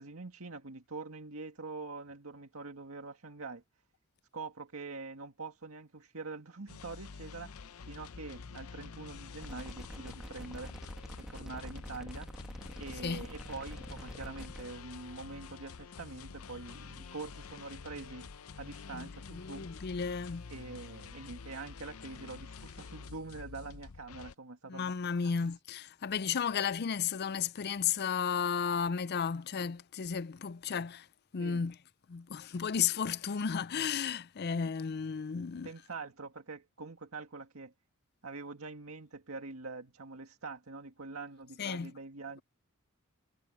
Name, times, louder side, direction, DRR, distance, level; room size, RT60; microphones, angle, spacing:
voice 1, 0.0-3.6 4.3-7.5 7.8-10.7 11.2-12.3 12.8-18.3 18.5-19.7 20.5-25.5 31.4-31.7 35.6-37.7 38.2-42.4, right 3 dB, 75° right, 2.0 m, -45 dB
sound 1, 6.7-24.3, left 5 dB, 85° left, 0.7 m, -48 dB
sound 2, 9.4-14.6, equal, 5° right, 1.8 m, -46 dB
voice 2, 18.9-20.5 24.7-31.1 31.3-31.8 32.1-35.7 41.6-41.9, left 6 dB, 50° left, 0.5 m, -33 dB
head